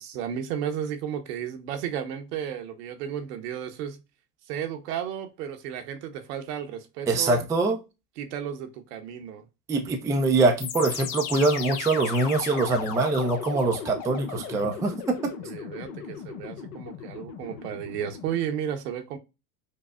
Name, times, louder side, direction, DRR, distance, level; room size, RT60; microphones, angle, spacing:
voice 1, 0.0-4.0 4.5-7.4 8.2-9.5 15.4-19.2, right 9 dB, 75° right, 1.0 m, -33 dB
voice 2, 7.1-7.8 9.7-15.2, right 3 dB, 10° right, 0.3 m, -24 dB
sound 1, 10.6-18.4, left 7 dB, 65° left, 0.8 m, -36 dB
5.2 x 2.0 x 2.2 m
hypercardioid pair, 100°, 48 cm